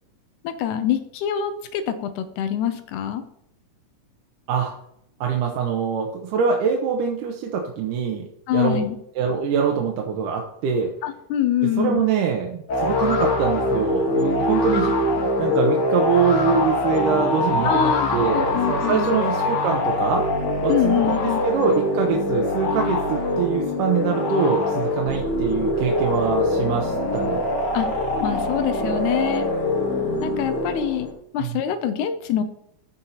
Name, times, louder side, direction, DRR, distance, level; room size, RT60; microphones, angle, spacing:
voice 1, 0.4-3.2 8.5-9.0 11.0-12.0 17.6-19.2 20.7-21.4 27.7-27.9 28.2-29.5 30.2-32.4, left 10 dB, 80° left, 10 dB, 2.0 m, -25 dB
voice 2, 5.2-8.8 9.2-10.9 11.8-20.2 20.6-21.2 21.4-27.4 31.4-31.6, right 6 dB, 90° right, 1 dB, 2.4 m, -24 dB
sound 1, 12.7-31.1, left 2 dB, 50° left, 1.4 m, -23 dB
15.0 x 5.3 x 2.8 m, 0.75 s
omnidirectional pair, 3.7 m